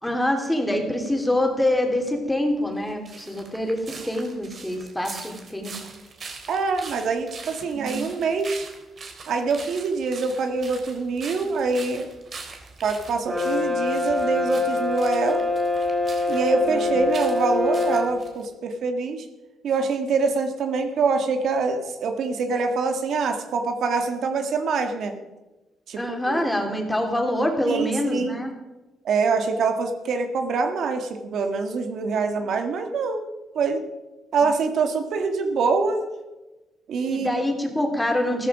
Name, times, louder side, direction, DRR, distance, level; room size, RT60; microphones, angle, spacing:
voice 1, 0.0-3.8 4.1-5.7 7.7-8.0 16.6-16.9 26.0-28.5 34.4-34.5 37.1-38.5, left 1 dB, 10° left, 3 dB, 3.1 m, -25 dB
sound 1, 2.7-18.5, right 4 dB, 45° right, 3.3 m, -42 dB
voice 2, 6.5-8.7 9.3-12.1 12.8-15.5 16.3-19.3 19.6-25.1 25.9-26.4 27.7-28.4 29.0-33.2 33.5-33.8 34.3-36.0 36.9-37.4, right 4 dB, 70° right, 6 dB, 1.9 m, -25 dB
Brass instrument, 13.2-18.1, left 3 dB, 20° right, 4.8 m, -24 dB
14.0 x 14.0 x 5.0 m, 1.1 s
cardioid pair, 90°, 0 cm